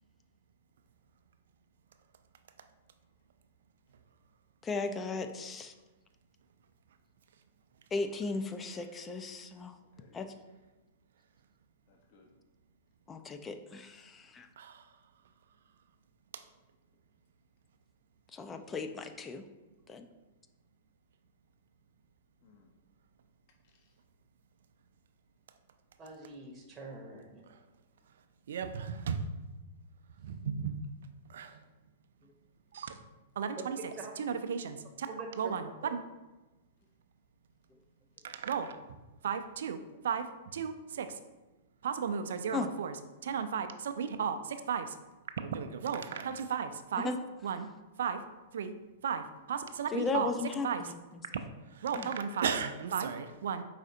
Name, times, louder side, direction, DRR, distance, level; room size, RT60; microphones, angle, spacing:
voice 1, 4.6-5.7 7.9-9.8 10.1-10.3 13.1-14.5 18.3-19.4 19.9-20.0 42.5-42.7 47.0-47.2 49.9-51.5 51.9-52.1, left 4 dB, 20° left, 7 dB, 0.4 m, -36 dB
voice 2, 9.8-10.2 11.9-12.3 22.4-22.7 23.6-24.0 42.4-43.0, left 4 dB, 50° left, 1 dB, 0.8 m, -62 dB
voice 3, 26.0-27.4 34.0-34.1 35.1-35.5 35.8-35.9, right 3 dB, 20° right, -1 dB, 0.8 m, -45 dB
voice 4, 28.5-29.2 30.2-30.8 31.3-31.6 32.7-33.0 33.4-33.8 34.2-35.1 35.4-36.0 38.2-38.8 39.2-39.8 40.0-40.3 40.5-41.2 41.8-42.9 43.2-44.9 45.4-47.1 47.4-47.7 48.0-48.2 48.5-48.7 49.0-50.3 50.6-50.8 51.7-53.6, right 7 dB, 65° right, 9 dB, 0.4 m, -34 dB
4.9 x 4.0 x 2.6 m, 1.1 s
figure-of-eight pair, 105°, 0 cm